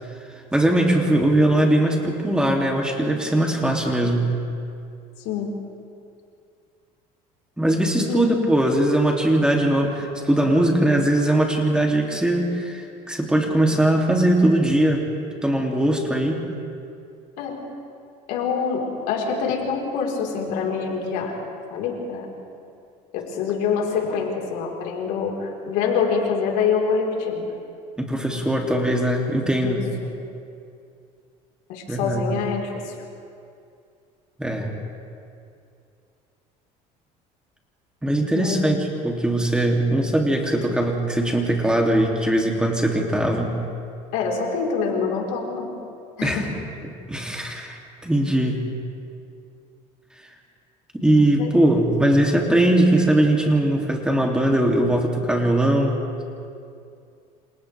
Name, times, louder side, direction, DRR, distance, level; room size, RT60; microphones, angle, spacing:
voice 1, 0.5-4.4 7.6-15.0 15.4-16.4 28.0-29.9 31.9-32.2 34.4-34.7 38.0-43.6 46.2-46.5 46.8-48.7 50.9-56.0, right 1 dB, 5° right, 0 dB, 2.6 m, -20 dB
voice 2, 18.3-21.4 21.7-22.3 23.1-27.5 29.6-30.1 31.7-32.9 38.3-38.6 44.1-45.7 46.2-46.5 51.4-51.5, left 5 dB, 80° left, -1 dB, 4.1 m, -25 dB
28.5 x 27.0 x 3.4 m, 2.5 s
cardioid pair, 125°, 15 cm